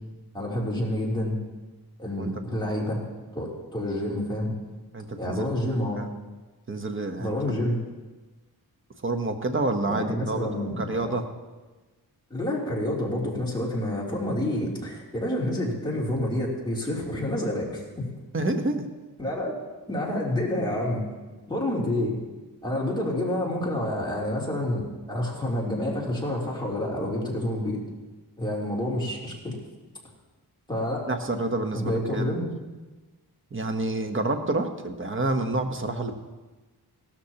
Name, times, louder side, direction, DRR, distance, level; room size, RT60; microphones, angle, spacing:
voice 1, 0.3-1.4 2.0-3.0 3.3-4.5 5.2-6.0 7.2-7.8 9.9-11.1 12.3-18.1 19.2-19.5 19.9-21.0 21.5-22.2 22.6-27.8 28.4-29.6 30.7-31.1 31.7-32.5, left 1 dB, 10° left, -5 dB, 3.1 m, -28 dB
voice 2, 4.9-6.1 6.7-7.6 9.0-10.5 10.8-11.3 18.3-18.9 31.1-32.5 33.5-36.1, right 2 dB, 30° right, 6 dB, 1.0 m, -28 dB
17.0 x 13.0 x 2.9 m, 1.2 s
wide cardioid pair, 120°, 40 cm